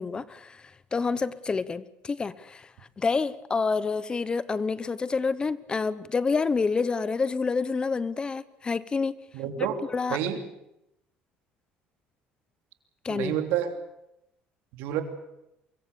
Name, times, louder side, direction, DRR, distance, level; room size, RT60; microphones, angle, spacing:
voice 1, 0.0-2.7 3.0-9.2 9.6-9.7 9.9-10.2 13.0-13.3, left 4 dB, 25° left, 0.9 m, -28 dB
voice 2, 9.3-9.8 10.1-10.4 13.1-13.7 14.7-15.0, right 11 dB, 80° right, 3.1 m, -28 dB
24.0 x 22.5 x 6.9 m
cardioid pair, 110°, 4 cm